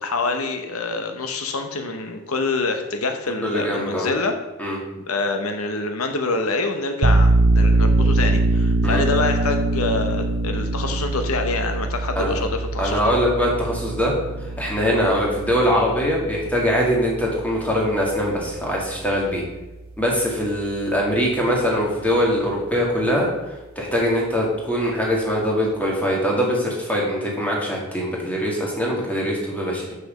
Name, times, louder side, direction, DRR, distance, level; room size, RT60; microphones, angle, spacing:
voice 1, 0.0-4.3 5.1-13.1, left 3 dB, 80° left, 6 dB, 1.0 m, -26 dB
voice 2, 3.4-4.1 4.6-4.8 8.8-9.0 12.2-12.4 12.8-14.1 14.6-19.4 20.0-30.0, equal, 5° left, -3 dB, 2.2 m, -22 dB
sound 1, 7.0-18.3, right 2 dB, 60° right, 0.5 m, -22 dB
7.0 x 6.7 x 6.4 m, 1.1 s
head